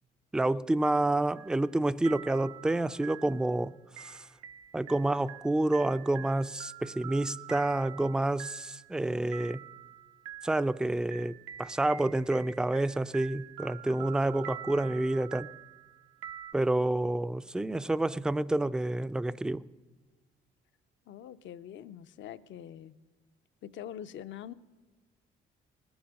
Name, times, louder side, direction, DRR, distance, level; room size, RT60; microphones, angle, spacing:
voice 1, 0.3-4.3 4.7-9.6 10.4-11.3 11.6-15.5 16.5-19.6, right 2 dB, 5° right, 0.3 m, -29 dB
sound 1, 1.3-1.8 2.0-16.5, right 11 dB, 85° right, 0.7 m, -46 dB
voice 2, 21.1-23.0 23.6-24.5, left 10 dB, 65° left, 0.5 m, -44 dB
20.0 x 7.1 x 6.3 m
cardioid pair, 85°, 21 cm